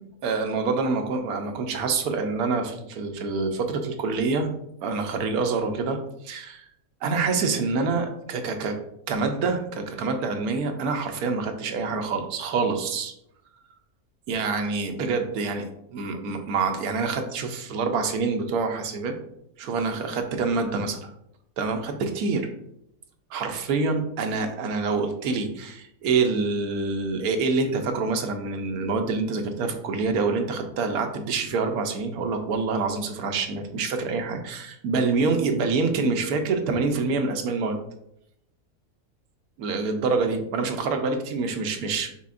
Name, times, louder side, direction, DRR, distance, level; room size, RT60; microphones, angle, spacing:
voice 1, 0.2-4.5 4.8-6.0 6.2-6.7 7.0-8.8 9.1-13.1 14.3-19.1 19.6-21.1 21.6-22.5 23.3-37.8 39.6-42.1, right 4 dB, 90° right, 5 dB, 1.1 m, -26 dB
5.8 x 3.7 x 2.5 m, 0.77 s
omnidirectional pair, 1.5 m